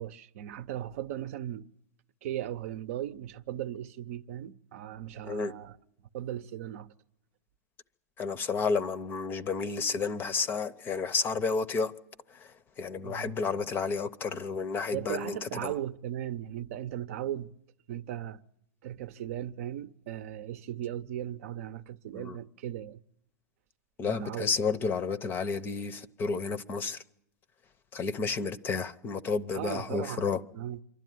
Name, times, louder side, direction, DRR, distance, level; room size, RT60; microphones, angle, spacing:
voice 1, 0.0-1.7 2.2-5.8 6.1-6.9 13.0-13.3 14.9-17.5 17.9-18.4 18.8-23.0 24.0-24.5 29.5-30.3 30.5-30.8, right 11 dB, 55° right, 0.7 m, -37 dB
voice 2, 8.2-11.9 12.3-15.7 22.1-22.4 24.0-27.0 27.9-30.4, left 5 dB, 25° left, 0.7 m, -31 dB
26.0 x 12.0 x 9.3 m
hypercardioid pair, 135°, 9 cm